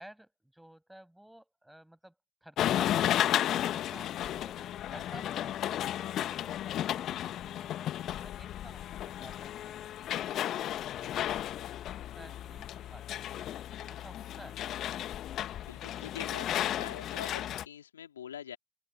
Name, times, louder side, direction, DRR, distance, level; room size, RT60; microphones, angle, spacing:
voice 1, 0.0-2.2 2.4-9.8 10.2-11.4 12.0-13.5 13.9-14.6, right 1 dB, 5° right, 6.9 m, -53 dB
sound 1, 2.6-17.6, left 12 dB, 55° left, 1.0 m, -34 dB
voice 2, 15.6-18.6, left 9 dB, 85° left, 2.5 m, -44 dB
open air
hypercardioid pair, 60°, 0 cm